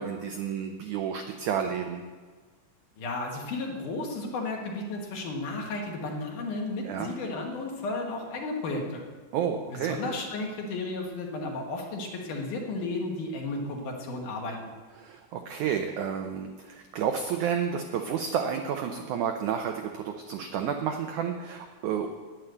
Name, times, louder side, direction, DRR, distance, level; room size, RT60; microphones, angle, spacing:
voice 1, 0.0-2.0 6.8-7.1 9.3-10.0 15.0-22.1, right 8 dB, 85° right, 5 dB, 1.7 m, -31 dB
voice 2, 3.0-9.0 9.7-14.7, left 2 dB, 60° left, 1 dB, 2.8 m, -33 dB
10.0 x 9.3 x 8.0 m, 1.5 s
omnidirectional pair, 4.4 m